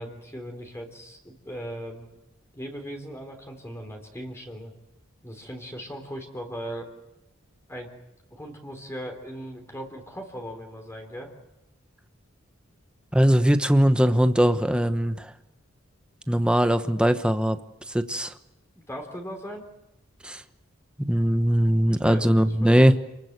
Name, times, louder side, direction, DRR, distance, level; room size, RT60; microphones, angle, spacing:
voice 1, 0.0-2.1 2.5-4.7 5.2-6.9 7.7-7.9 8.3-11.3 18.8-19.7 21.9-22.8, equal, 15° left, 2 dB, 3.6 m, -38 dB
voice 2, 13.1-15.3 16.3-17.6 17.9-18.3 20.2-20.4 21.0-23.0, equal, 5° right, 9 dB, 1.1 m, -20 dB
28.5 x 21.0 x 8.1 m, 0.90 s
head